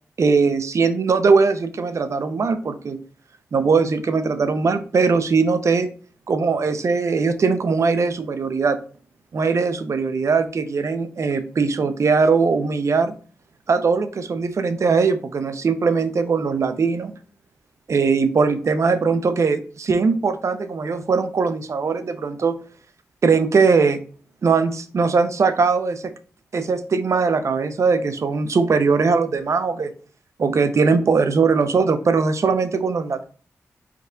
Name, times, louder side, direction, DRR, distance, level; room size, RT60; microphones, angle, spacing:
voice 1, 0.2-3.0 3.5-5.9 6.3-8.8 9.3-13.1 13.7-17.1 17.9-22.6 23.2-24.0 24.4-26.1 26.5-29.9 30.4-33.2, right 4 dB, 60° right, 10 dB, 0.6 m, -20 dB
5.3 x 4.0 x 2.3 m, 0.41 s
cardioid pair, 55°, 6 cm